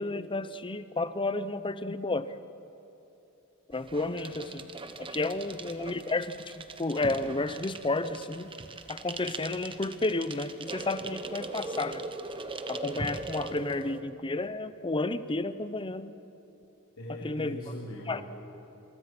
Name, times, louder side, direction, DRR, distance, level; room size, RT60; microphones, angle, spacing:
voice 1, 0.0-2.3 3.7-4.5 5.0-8.5 8.9-12.1 12.7-16.1 17.2-17.6 18.1-18.2, left 2 dB, 25° left, 13 dB, 0.7 m, -31 dB
sound 1, 3.7-14.0, right 3 dB, 25° right, 1.1 m, -40 dB
voice 2, 17.0-18.2, equal, 80° left, -3 dB, 3.1 m, -41 dB
27.5 x 24.0 x 6.1 m, 2.9 s
head